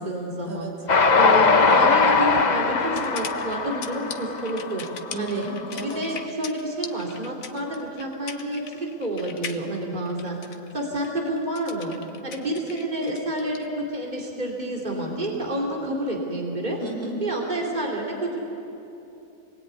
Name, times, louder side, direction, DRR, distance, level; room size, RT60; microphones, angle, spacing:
voice 1, 0.0-4.8 5.2-5.4 5.8-10.4 10.7-12.0 12.2-16.8 17.2-18.4, right 1 dB, 30° right, -1 dB, 3.5 m, -29 dB
sound 1, 0.9-13.7, left 6 dB, 70° left, 1.5 m, -40 dB
Train, 0.9-5.3, left 4 dB, 35° left, 0.9 m, -20 dB
voice 2, 5.1-6.0 16.8-17.2, right 2 dB, 85° right, 0 dB, 4.8 m, -34 dB
26.5 x 20.0 x 9.6 m, 2.9 s
omnidirectional pair, 1.5 m